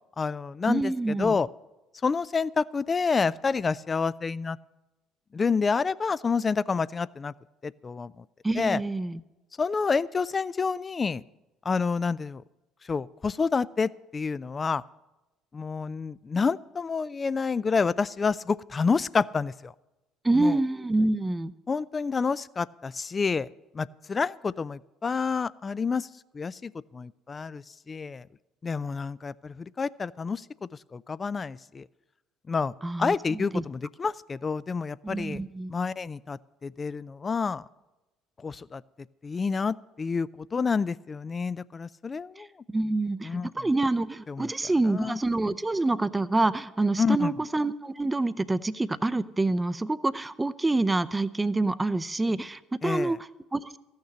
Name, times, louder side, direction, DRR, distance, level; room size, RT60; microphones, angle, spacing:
voice 1, 0.2-1.5 2.0-4.6 5.3-7.3 7.6-8.1 8.6-8.8 9.6-11.2 11.7-12.4 12.9-14.8 15.5-19.7 20.4-20.5 21.7-23.5 23.7-26.1 26.3-28.3 28.6-31.9 32.5-32.7 33.0-35.4 35.7-37.6 38.4-38.8 39.2-42.5 43.2-43.5 44.3-44.5 44.9-45.2 47.0-47.3 52.8-53.2, left 5 dB, 30° left, 20 dB, 0.4 m, -28 dB
voice 2, 0.7-1.4 8.4-9.2 20.2-21.5 32.8-33.6 35.0-35.7 42.4-53.8, right 2 dB, 15° right, 15 dB, 0.6 m, -27 dB
14.5 x 6.6 x 8.5 m, 1.0 s
hypercardioid pair, 60°, 0 cm